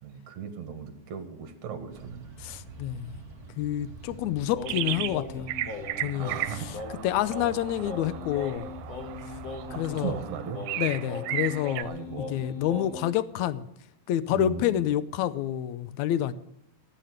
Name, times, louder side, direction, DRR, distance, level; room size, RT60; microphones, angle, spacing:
voice 1, 0.0-2.3 6.1-6.7 9.7-10.6 11.8-12.8 14.3-14.7, right 8 dB, 60° right, 7 dB, 2.9 m, -37 dB
sound 1, 1.9-10.3, right 3 dB, 30° right, 2.4 m, -46 dB
voice 2, 2.4-3.2 3.6-5.5 6.0-6.7 7.0-8.7 9.8-10.1 10.8-12.0 12.3-13.7 14.1-16.3, left 12 dB, 75° left, 15 dB, 1.7 m, -28 dB
Singing, 4.5-13.2, left 4 dB, 50° left, 2.5 m, -40 dB
sound 2, 4.7-5.2 5.5-11.8, right 15 dB, 85° right, 2.4 m, -35 dB
15.0 x 9.3 x 7.9 m, 0.75 s
omnidirectional pair, 4.0 m